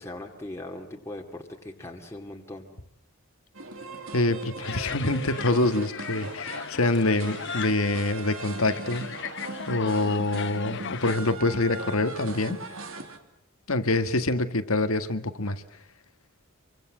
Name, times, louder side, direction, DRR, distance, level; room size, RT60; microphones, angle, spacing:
voice 1, 0.0-2.7, left 1 dB, 15° left, 1 dB, 2.4 m, -39 dB
sound 1, 3.5-13.2, right 2 dB, 70° right, 2.7 m, -39 dB
voice 2, 4.1-9.1 9.7-12.6 13.7-15.6, left 2 dB, 85° left, 10 dB, 1.8 m, -25 dB
sound 2, 4.6-11.2, left 7 dB, 60° left, 1.2 m, -38 dB
26.5 x 24.0 x 7.5 m, 0.70 s
head